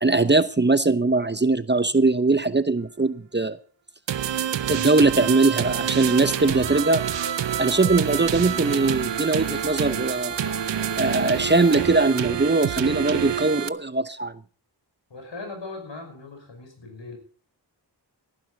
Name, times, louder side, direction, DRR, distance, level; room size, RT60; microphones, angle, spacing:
voice 1, 0.0-3.6 4.7-7.0 7.6-10.3 11.0-14.3, right 3 dB, 25° right, 0.9 m, -21 dB
sound 1, 4.1-13.7, right 9 dB, 80° right, 0.7 m, -27 dB
sound 2, 6.4-12.2, left 2 dB, 35° left, 5.1 m, -40 dB
voice 2, 15.1-17.2, left 3 dB, 75° left, 5.6 m, -39 dB
17.5 x 11.0 x 4.0 m
cardioid pair, 40°, 43 cm